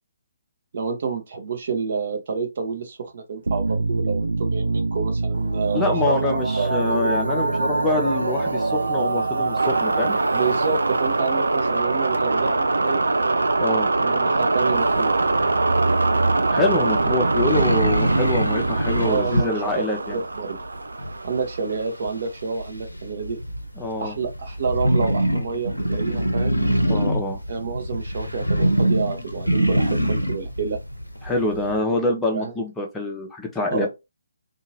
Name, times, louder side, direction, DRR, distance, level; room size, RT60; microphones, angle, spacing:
voice 1, 0.7-6.8 10.3-13.1 14.0-15.2 19.0-19.8 20.1-20.6 21.2-23.4 24.0-26.6 27.5-30.8 32.3-32.5 33.7-33.9, right 5 dB, 45° right, 0.8 m, -28 dB
sound 1, 3.5-21.9, right 3 dB, 65° right, 0.3 m, -23 dB
voice 2, 5.7-10.2 13.6-13.9 16.5-20.2 23.8-24.1 26.9-27.4 31.2-33.9, left 2 dB, 5° left, 0.6 m, -25 dB
sound 2, 14.7-31.8, equal, 90° left, 0.6 m, -25 dB
2.8 x 2.4 x 2.8 m
figure-of-eight pair, 140°, 0 cm